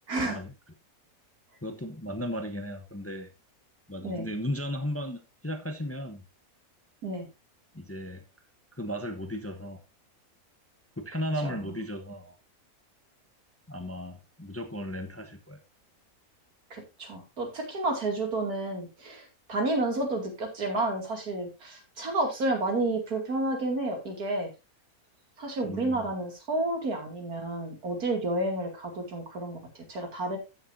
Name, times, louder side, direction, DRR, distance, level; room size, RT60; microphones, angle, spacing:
voice 1, 0.1-0.4 4.0-4.3 7.0-7.3 11.4-11.7 16.7-24.5 25.4-30.4, right 2 dB, 85° right, 3.0 m, -31 dB
voice 2, 1.6-3.3 3.9-6.2 7.7-8.2 8.7-9.8 11.0-12.3 13.7-15.6 25.6-26.1, equal, 10° left, 0.8 m, -35 dB
14.0 x 6.6 x 2.7 m
omnidirectional pair, 1.6 m